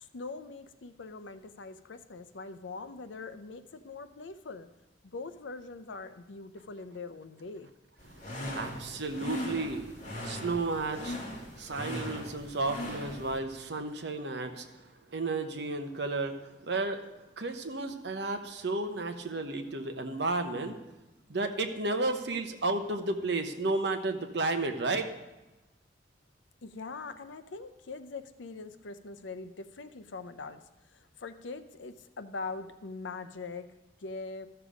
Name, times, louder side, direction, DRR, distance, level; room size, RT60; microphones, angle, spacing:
voice 1, 0.0-4.7 5.0-7.7 26.6-34.5, left 3 dB, 80° left, 11 dB, 0.6 m, -42 dB
sound 1, 8.0-13.4, equal, 40° left, 2.1 m, -39 dB
voice 2, 8.1-17.0 17.4-20.8 21.3-25.1, right 2 dB, 65° right, 6 dB, 1.0 m, -33 dB
13.5 x 6.9 x 5.0 m, 1.1 s
head